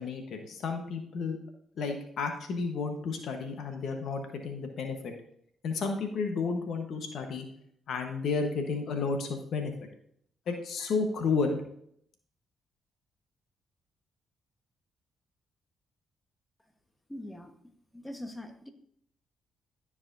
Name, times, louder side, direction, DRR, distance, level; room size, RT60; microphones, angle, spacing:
voice 1, 0.0-1.4 1.8-5.1 5.6-7.4 7.9-9.7 10.5-11.6, left 4 dB, 70° left, 5 dB, 1.1 m, -32 dB
voice 2, 17.1-17.5 17.9-18.7, left 1 dB, 10° left, 6 dB, 1.2 m, -42 dB
12.5 x 4.8 x 2.6 m, 0.68 s
supercardioid pair, 55°, 0 cm